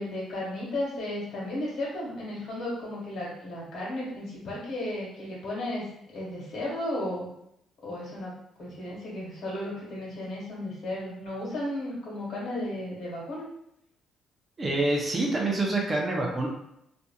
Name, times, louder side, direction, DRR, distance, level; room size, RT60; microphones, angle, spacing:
voice 1, 0.0-7.3 7.8-8.3 8.6-13.4, left 1 dB, 60° left, -6 dB, 1.5 m, -34 dB
voice 2, 14.6-16.5, right 2 dB, 25° right, -1 dB, 0.5 m, -26 dB
2.7 x 2.5 x 2.2 m, 0.77 s
cardioid pair, 135°, 0 cm